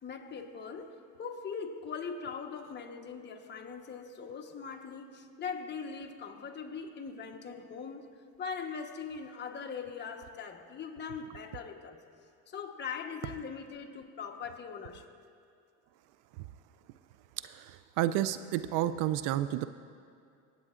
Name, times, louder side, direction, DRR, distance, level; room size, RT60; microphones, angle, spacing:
voice 1, 0.0-8.1 8.4-12.0 12.5-15.0, left 6 dB, 30° left, 3 dB, 1.1 m, -41 dB
voice 2, 17.4-19.7, right 13 dB, 65° right, 13 dB, 0.4 m, -31 dB
25.5 x 8.6 x 2.5 m, 2.4 s
supercardioid pair, 100°, 35 cm